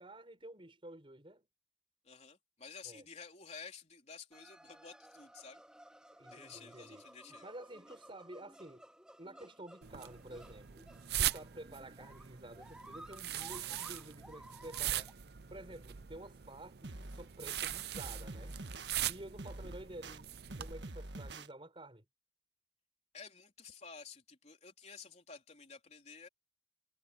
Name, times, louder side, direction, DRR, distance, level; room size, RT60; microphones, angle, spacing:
voice 1, 0.0-1.4 2.8-3.1 6.2-7.0 7.4-8.8 9.2-10.8 11.2-15.1 15.5-18.5 19.1-20.3 20.6-22.0, right 1 dB, 30° right, 5.1 m, -51 dB
voice 2, 2.0-5.6 6.3-7.5 23.1-26.3, left 5 dB, 40° left, 3.8 m, -52 dB
sound 1, 4.3-15.1, right 1 dB, 5° right, 2.9 m, -56 dB
sound 2, 9.8-20.7, right 11 dB, 60° right, 0.7 m, -41 dB
sound 3, 16.8-17.6 17.9-18.9 19.4-20.2 20.5-21.5, right 2 dB, 80° right, 1.5 m, -46 dB
head